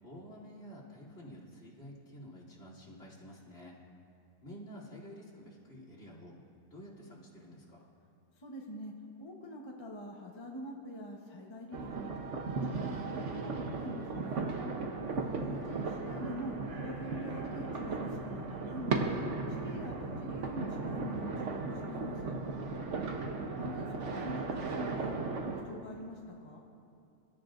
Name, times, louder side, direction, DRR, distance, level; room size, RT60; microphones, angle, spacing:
voice 1, 0.0-3.8 4.4-6.4 6.7-7.9 15.1-15.7 23.0-23.5, equal, 45° left, -4 dB, 3.6 m, -50 dB
voice 2, 8.4-8.9 9.2-12.1 12.5-14.5 15.4-19.1 19.6-22.3 23.6-26.6, equal, 20° left, -1 dB, 0.9 m, -44 dB
sound 1, 11.7-25.6, right 3 dB, 50° right, 1.2 m, -36 dB
sound 2, 16.0-25.1, right 1 dB, 85° right, 4.1 m, -53 dB
26.5 x 13.0 x 2.6 m, 2.6 s
omnidirectional pair, 1.9 m